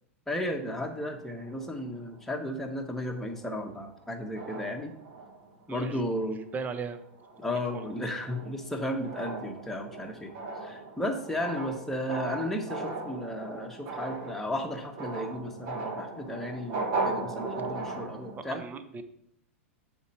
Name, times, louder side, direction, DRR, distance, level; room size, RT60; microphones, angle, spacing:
voice 1, 0.3-4.9 5.7-6.4 7.4-10.3 10.6-18.6, left 1 dB, 5° left, 1 dB, 1.3 m, -34 dB
sound 1, 0.6-2.4 3.1-3.3 3.6-4.0 4.4-5.6 6.1-6.4 6.8-18.4, right 3 dB, 50° right, 1.3 m, -38 dB
voice 2, 5.7-6.2 6.5-7.0 7.7-7.8 18.4-19.0, right 5 dB, 25° right, 10 dB, 0.7 m, -37 dB
8.0 x 4.4 x 4.3 m, 0.73 s
hypercardioid pair, 105°, 7 cm